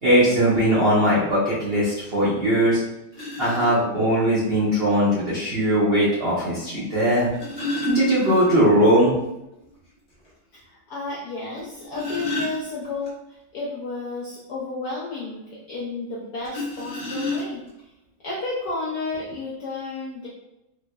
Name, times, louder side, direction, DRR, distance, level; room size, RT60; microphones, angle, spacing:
voice 1, 0.0-2.8 3.4-7.3 7.9-9.1, equal, 65° right, -9 dB, 0.5 m, -20 dB
sound 1, 3.1-3.8 5.2-5.3 7.1-8.8 9.1-9.2 9.6-9.7 10.2-10.3 11.6-13.1 16.4-17.8 18.7-18.8 19.1-19.3, left 2 dB, 25° left, 0.8 m, -31 dB
voice 2, 10.6-13.1 13.5-17.6 18.2-20.3, left 3 dB, 70° left, -6 dB, 0.8 m, -32 dB
3.2 x 3.0 x 2.3 m, 0.90 s
omnidirectional pair, 2.3 m